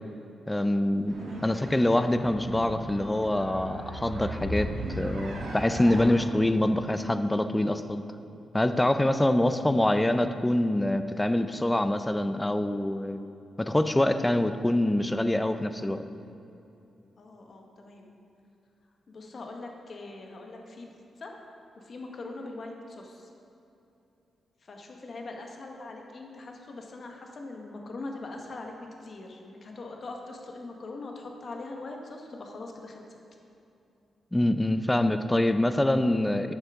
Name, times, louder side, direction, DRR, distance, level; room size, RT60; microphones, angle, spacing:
voice 1, 0.5-1.2 1.4-4.7 4.9-8.1 8.5-13.2 13.6-16.0 34.3-36.5, left 1 dB, 10° left, 10 dB, 0.4 m, -25 dB
sound 1, 1.1-6.1, right 1 dB, 80° right, 1.5 m, -36 dB
voice 2, 17.1-18.1 19.1-20.9 21.2-21.4 21.8-23.3 24.6-33.2, left 2 dB, 50° left, 2 dB, 1.1 m, -42 dB
11.0 x 6.6 x 3.6 m, 2.8 s
cardioid pair, 110°, 0 cm